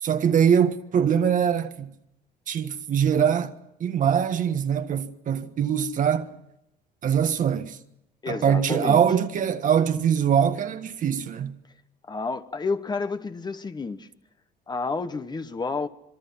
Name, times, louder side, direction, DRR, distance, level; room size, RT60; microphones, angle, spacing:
voice 1, 0.0-1.9 2.5-3.5 3.8-6.3 7.0-7.8 8.3-11.5, right 8 dB, 50° right, 1.4 m, -23 dB
voice 2, 8.2-9.0 12.1-14.1 14.7-15.9, left 4 dB, 25° left, 1.2 m, -30 dB
26.5 x 23.0 x 5.6 m
cardioid pair, 110°, 17 cm